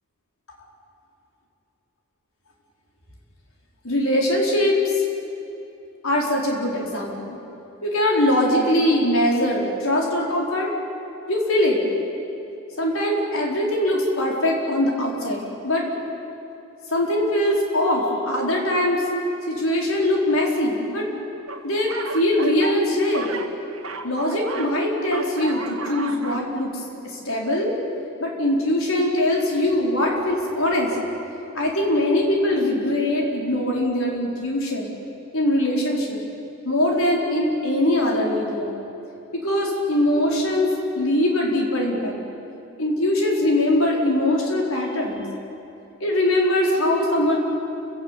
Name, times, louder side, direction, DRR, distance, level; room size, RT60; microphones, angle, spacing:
voice 1, 3.8-5.0 6.0-7.4 7.8-10.7 11.3-11.8 12.8-15.9 16.9-19.0 19.5-21.1 21.6-23.3 24.0-26.7 27.0-27.7 28.2-31.0 31.5-34.9 35.3-36.2 36.6-38.7 39.3-42.2 42.8-45.2 46.0-47.4, left 1 dB, 75° left, -2 dB, 4.8 m, -22 dB
sound 1, 21.5-24.8 25.0-26.5, right 3 dB, 75° right, 1.7 m, -34 dB
29.5 x 16.0 x 9.2 m, 2.9 s
head